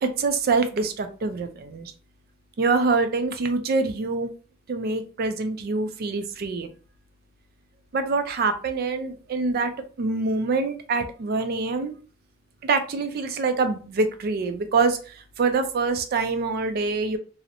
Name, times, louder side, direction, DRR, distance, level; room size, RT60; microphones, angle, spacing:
voice 1, 0.0-1.9 2.6-4.3 4.7-6.7 7.9-9.7 10.0-11.9 12.6-17.2, right 4 dB, 45° right, 8 dB, 0.3 m, -25 dB
2.5 x 2.0 x 2.8 m, 0.38 s
head